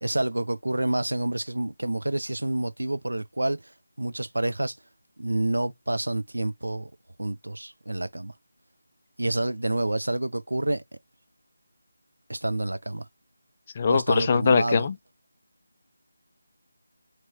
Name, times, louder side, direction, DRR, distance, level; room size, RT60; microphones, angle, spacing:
voice 1, 0.0-3.6 4.0-4.7 5.2-6.9 7.2-8.3 9.2-10.8 12.3-13.1 13.9-14.9, right 1 dB, 75° right, 0.5 m, -28 dB
voice 2, 13.8-14.9, left 5 dB, 30° left, 0.3 m, -22 dB
3.0 x 2.8 x 4.2 m
figure-of-eight pair, 160°, 0 cm